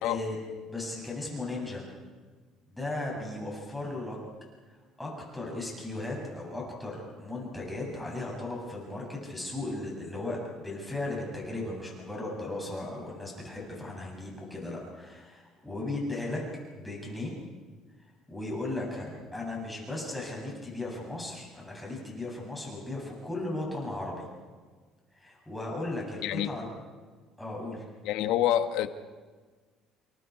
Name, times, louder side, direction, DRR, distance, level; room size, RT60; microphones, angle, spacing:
voice 1, 0.0-0.4 0.7-1.9 2.7-4.2 5.0-16.4 16.7-17.3 18.3-24.2 25.1-26.7 27.4-27.8, left 2 dB, 5° left, -2 dB, 7.8 m, -36 dB
voice 2, 26.2-26.5 28.0-28.9, left 11 dB, 80° left, 9 dB, 1.4 m, -27 dB
29.0 x 29.0 x 4.8 m, 1.4 s
cardioid pair, 135°, 0 cm